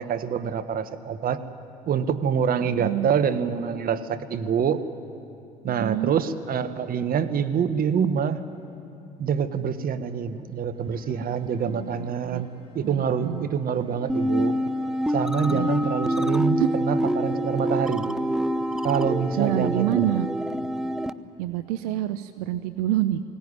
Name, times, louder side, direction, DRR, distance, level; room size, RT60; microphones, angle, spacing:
voice 1, 0.0-1.4 1.9-4.8 5.6-8.4 9.2-12.5 12.7-14.5 15.1-18.0 18.8-20.1, right 7 dB, 45° right, 10 dB, 1.4 m, -26 dB
voice 2, 2.6-3.2 5.7-6.1 11.7-12.4 12.8-13.5 15.5-15.7 16.6-16.7 19.4-20.3 21.4-23.2, right 13 dB, 80° right, 11 dB, 0.7 m, -27 dB
sound 1, 7.6-21.5, left 1 dB, 25° right, 6.1 m, -50 dB
sound 2, 14.1-21.1, equal, 5° right, 0.7 m, -26 dB
23.0 x 17.5 x 9.8 m, 2.7 s
hypercardioid pair, 60°, 20 cm